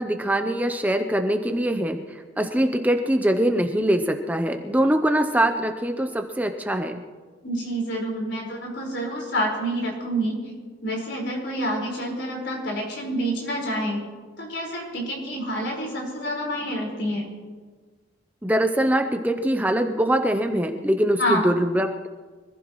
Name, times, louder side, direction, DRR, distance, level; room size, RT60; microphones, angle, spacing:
voice 1, 0.0-2.0 2.4-7.0 18.4-22.1, right 1 dB, 10° right, 6 dB, 0.7 m, -23 dB
voice 2, 7.4-10.4 10.8-14.0 14.4-17.3 21.2-21.5, equal, 75° left, -2 dB, 5.0 m, -28 dB
25.5 x 15.0 x 3.1 m, 1.5 s
head